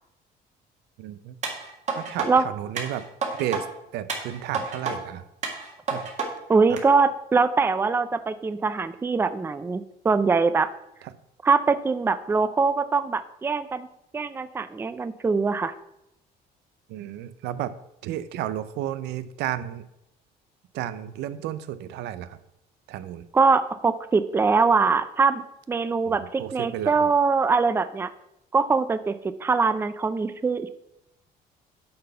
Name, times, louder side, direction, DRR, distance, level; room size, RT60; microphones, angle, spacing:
voice 1, 1.0-1.4 1.9-3.1 3.4-3.7 3.9-5.2 5.9-6.0 6.7-6.8 16.9-17.7 18.0-19.8 20.7-22.4 22.9-23.2 26.1-27.1, right 12 dB, 85° right, 14 dB, 0.5 m, -32 dB
sound 1, 1.4-2.3 2.8-3.6 4.1-5.0 5.4-6.3 6.8-6.9, right 4 dB, 40° right, 1.7 m, -30 dB
voice 2, 6.5-10.7 11.4-13.9 14.1-15.7 23.3-28.1 28.5-30.7, right 4 dB, 15° right, 12 dB, 0.4 m, -23 dB
8.6 x 4.0 x 5.6 m, 0.84 s
cardioid pair, 110°, 17 cm